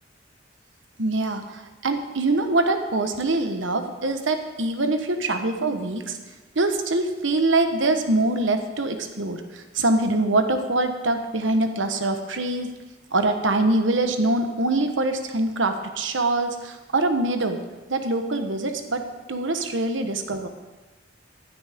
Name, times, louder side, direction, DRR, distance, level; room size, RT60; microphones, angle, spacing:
voice 1, 1.0-6.2 6.5-12.7 13.1-17.6 17.9-20.5, right 2 dB, 85° right, 7 dB, 1.2 m, -24 dB
16.0 x 10.0 x 3.7 m, 1.2 s
head